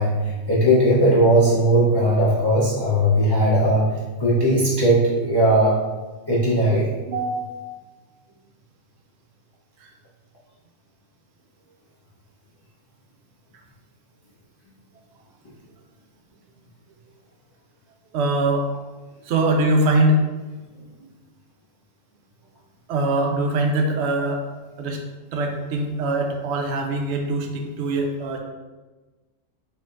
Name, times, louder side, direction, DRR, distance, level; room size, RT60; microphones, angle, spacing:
voice 1, 0.0-5.7 6.3-6.9, right 1 dB, 35° left, -9 dB, 0.4 m, -18 dB
voice 2, 7.1-7.8 18.1-18.7 19.2-20.2 22.9-24.4 24.8-25.0 25.3-28.4, right 2 dB, 65° right, 2 dB, 0.8 m, -22 dB
4.3 x 2.6 x 2.4 m, 1.2 s
omnidirectional pair, 1.4 m